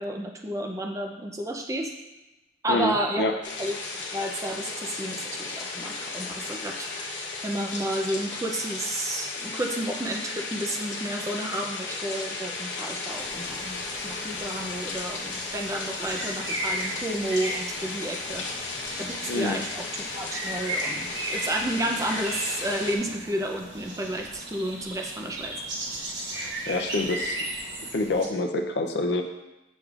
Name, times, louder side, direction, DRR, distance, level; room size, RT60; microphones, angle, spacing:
voice 1, 0.0-1.9 2.6-3.3 3.6-3.8 4.1-18.4 19.0-25.5, right 1 dB, 15° right, 2 dB, 0.5 m, -31 dB
voice 2, 2.7-3.4 19.3-19.6 26.4-27.4 27.9-29.2, left 2 dB, 70° left, 4 dB, 0.5 m, -27 dB
sound 1, 3.4-23.0, left 3 dB, 85° left, 1.0 m, -35 dB
sound 2, 13.1-28.3, right 1 dB, 85° right, 1.1 m, -36 dB
6.5 x 6.2 x 2.4 m, 1.0 s
head